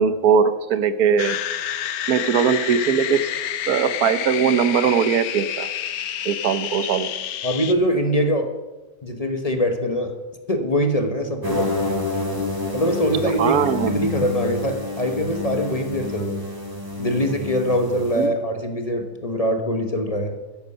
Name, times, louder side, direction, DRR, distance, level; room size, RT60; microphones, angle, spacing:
voice 1, 0.0-1.4 2.1-3.3 3.7-5.7 6.2-7.1 13.4-14.1 18.2-18.4, right 7 dB, 70° right, 12 dB, 1.3 m, -20 dB
sound 1, 1.2-7.7, left 10 dB, 70° left, 1.2 m, -29 dB
voice 2, 7.4-8.5 9.0-10.2 10.5-11.7 12.7-13.6 13.9-16.4 17.0-20.4, equal, 25° left, 6 dB, 1.1 m, -23 dB
sound 2, 11.4-18.3, left 2 dB, 15° right, 2.3 m, -28 dB
13.5 x 10.5 x 5.6 m, 1.1 s
omnidirectional pair, 1.7 m